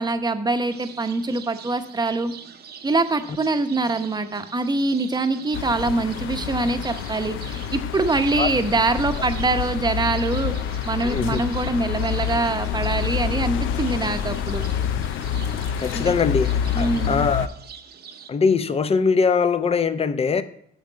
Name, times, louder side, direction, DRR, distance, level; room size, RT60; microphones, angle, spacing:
voice 1, 0.0-2.3 2.8-10.5 10.9-14.6 15.9-16.1 16.7-17.2, right 3 dB, 20° right, 0.9 m, -24 dB
sound 1, 0.7-18.3, right 7 dB, 55° right, 0.8 m, -43 dB
sound 2, 5.5-17.5, left 9 dB, 80° left, 0.5 m, -27 dB
voice 2, 11.0-11.4 15.8-16.5 16.8-17.5 18.3-20.4, left 5 dB, 30° left, 0.6 m, -21 dB
8.8 x 6.6 x 4.6 m
cardioid pair, 90°, 20 cm